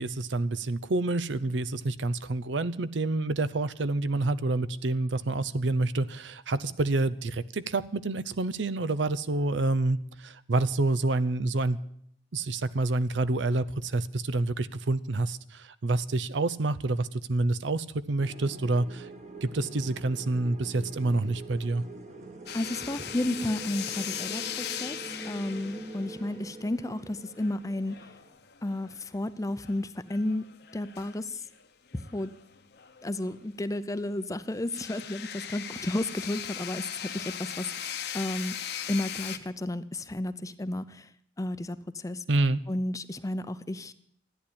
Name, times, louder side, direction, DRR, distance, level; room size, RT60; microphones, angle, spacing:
voice 1, 0.0-11.8 12.3-19.1 19.4-21.8 42.3-42.6, right 2 dB, 75° right, 0.7 m, -28 dB
sound 1, 18.2-28.3, right 2 dB, 40° right, 1.6 m, -44 dB
sound 2, 22.5-29.1 29.6-29.8 30.1-33.6 33.9-34.0 34.7-39.4, left 9 dB, 60° left, 1.0 m, -39 dB
voice 2, 22.5-25.0 25.2-28.0 28.6-31.4 31.9-32.3 33.0-38.6 38.9-41.1 41.4-42.2 42.7-43.9, left 1 dB, 20° left, 0.6 m, -32 dB
14.0 x 10.0 x 8.6 m
head